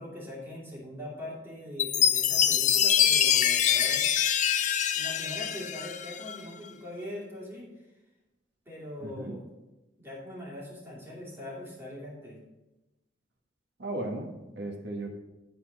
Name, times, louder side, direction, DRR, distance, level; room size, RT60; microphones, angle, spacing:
voice 1, 0.0-4.1 4.9-7.9 8.7-9.4 10.0-12.4, left 1 dB, 15° right, -6 dB, 2.6 m, -41 dB
Chime, 1.8-6.4, left 9 dB, 40° left, 0.4 m, -25 dB
voice 2, 9.0-9.3 13.8-15.1, right 1 dB, 65° right, 1 dB, 1.5 m, -36 dB
11.5 x 4.2 x 5.2 m, 1.0 s
head